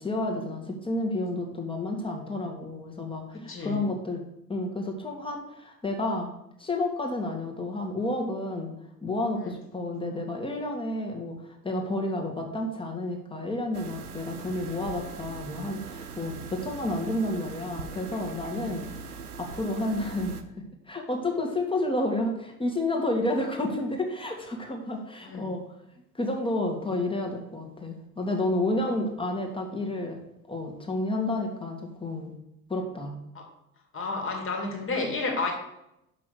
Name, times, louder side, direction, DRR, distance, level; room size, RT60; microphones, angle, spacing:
voice 1, 0.0-4.2 4.5-6.3 6.6-8.7 9.0-20.4 20.9-25.6 26.1-30.2 30.5-32.3 32.7-33.2, left 1 dB, 10° left, 2 dB, 1.9 m, -30 dB
voice 2, 3.3-3.8 9.4-9.5 16.2-16.4 18.5-18.8 25.2-25.5 33.3-33.4 33.9-35.5, left 3 dB, 30° left, 2 dB, 2.3 m, -32 dB
sound 1, 13.7-20.4, right 5 dB, 85° right, 0.7 m, -41 dB
6.1 x 5.9 x 6.6 m, 0.85 s
figure-of-eight pair, 65°, 44 cm